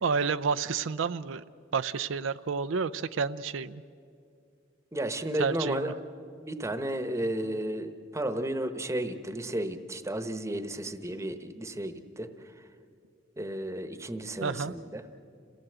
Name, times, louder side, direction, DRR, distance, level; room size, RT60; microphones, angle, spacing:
voice 1, 0.0-1.4 1.7-3.8 5.4-5.9 14.4-14.7, right 5 dB, 90° right, 13 dB, 0.5 m, -30 dB
voice 2, 4.9-5.9 6.4-12.3 13.4-15.0, right 1 dB, 15° right, 9 dB, 1.0 m, -33 dB
27.5 x 17.0 x 8.0 m, 2.4 s
head